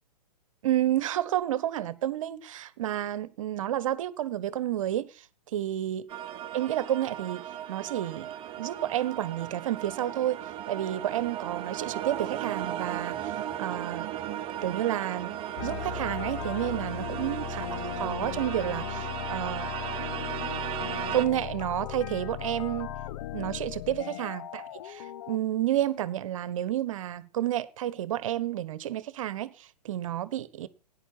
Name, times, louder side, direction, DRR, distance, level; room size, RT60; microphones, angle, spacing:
voice 1, 0.6-6.1 6.5-14.1 14.6-17.7 18.0-19.7 21.1-22.9 23.3-30.7, right 12 dB, 55° right, 1.3 m, -30 dB
sound 1, 6.1-21.2, right 10 dB, 25° right, 1.2 m, -36 dB
sound 2, 15.6-25.4, left 12 dB, 45° left, 0.7 m, -37 dB
17.5 x 10.0 x 4.6 m
figure-of-eight pair, 115°, 21 cm